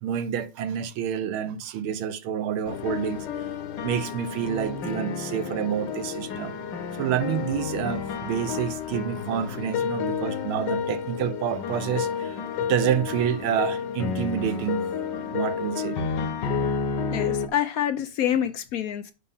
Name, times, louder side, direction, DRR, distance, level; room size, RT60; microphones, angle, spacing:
voice 1, 0.0-3.3 3.8-6.6 7.0-14.9 15.3-16.0, right 9 dB, 80° right, 1.6 m, -28 dB
sound 1, 2.7-17.5, left 6 dB, 65° left, 1.4 m, -30 dB
voice 2, 17.1-19.1, left 10 dB, 80° left, 0.8 m, -27 dB
7.4 x 5.4 x 5.5 m
omnidirectional pair, 2.3 m